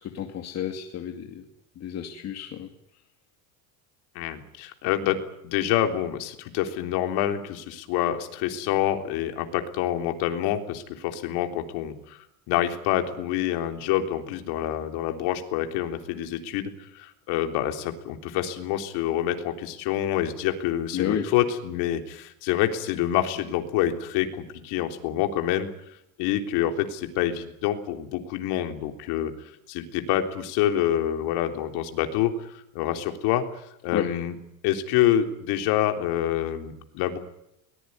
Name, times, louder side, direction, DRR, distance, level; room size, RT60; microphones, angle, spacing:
voice 1, 0.0-1.4 1.8-2.7 20.9-21.3 33.9-34.1, left 9 dB, 40° left, 4 dB, 2.6 m, -30 dB
voice 2, 4.2-24.3 24.6-25.7 26.2-29.3 29.7-33.4 33.8-34.4 34.6-37.2, left 11 dB, 65° left, 6 dB, 3.6 m, -27 dB
23.0 x 20.0 x 9.7 m, 0.81 s
cardioid pair, 145°, 41 cm